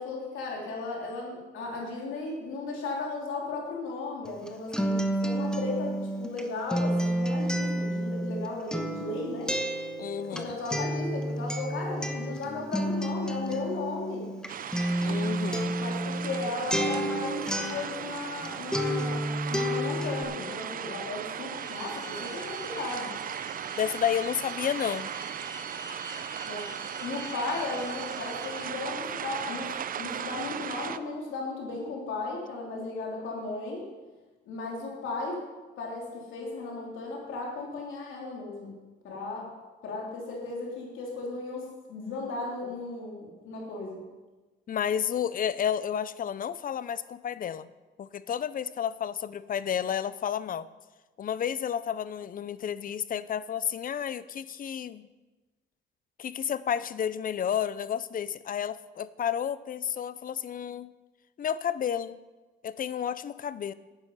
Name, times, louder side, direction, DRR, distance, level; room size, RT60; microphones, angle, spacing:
voice 1, 0.0-9.5 10.3-14.3 15.8-23.1 26.4-26.7 27.0-33.8 34.5-35.4 35.8-38.7 39.0-39.5 39.8-44.0, left 3 dB, 80° left, -1 dB, 3.2 m, -35 dB
Acoustic guitar, 4.2-18.5 18.7-20.2, equal, 5° left, 1.1 m, -30 dB
voice 2, 10.0-10.6 15.0-15.8 23.8-25.1 44.7-47.7 48.0-50.7 51.2-55.1 56.2-60.9 61.4-62.2 62.6-63.7, left 8 dB, 45° left, 17 dB, 0.5 m, -31 dB
sound 1, 14.5-31.0, right 8 dB, 45° right, 0.5 m, -37 dB
sound 2, 21.5-28.6, right 2 dB, 75° right, 2.4 m, -45 dB
11.0 x 8.7 x 5.5 m, 1.2 s
cardioid pair, 90°, 20 cm